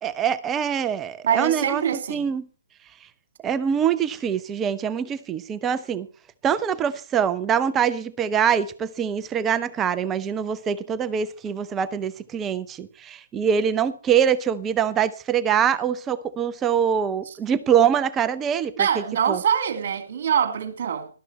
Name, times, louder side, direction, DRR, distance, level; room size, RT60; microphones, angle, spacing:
voice 1, 0.0-2.5 3.4-6.1 6.4-19.4, right 8 dB, 15° right, 0.6 m, -24 dB
voice 2, 1.2-2.2 18.8-21.1, right 8 dB, 45° right, 2.4 m, -24 dB
12.5 x 12.0 x 4.2 m
figure-of-eight pair, 140°, 0 cm